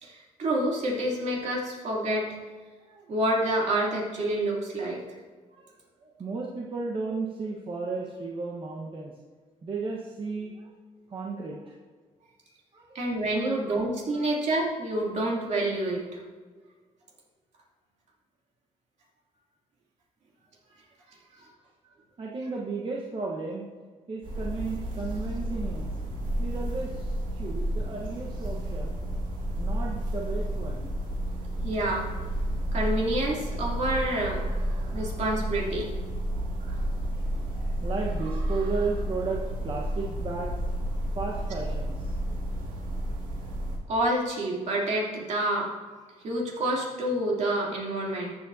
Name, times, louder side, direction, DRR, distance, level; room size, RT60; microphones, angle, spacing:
voice 1, 0.0-2.4 3.1-5.0 12.9-16.2 31.6-32.1 32.7-34.4 34.9-35.9 43.9-45.7 46.2-48.4, right 1 dB, 60° right, -3 dB, 2.8 m, -28 dB
voice 2, 6.0-9.1 9.6-10.7 11.1-11.7 12.7-13.0 13.4-13.5 14.1-14.3 22.2-23.7 24.1-25.9 26.4-27.1 27.4-29.0 29.6-30.9 37.8-40.6 41.1-41.9 42.3-42.4, right 4 dB, 40° right, -3 dB, 1.2 m, -34 dB
sound 1, 24.2-43.8, right 1 dB, 90° right, 2.1 m, -31 dB
14.0 x 8.0 x 2.7 m, 1.5 s
cardioid pair, 110°, 13 cm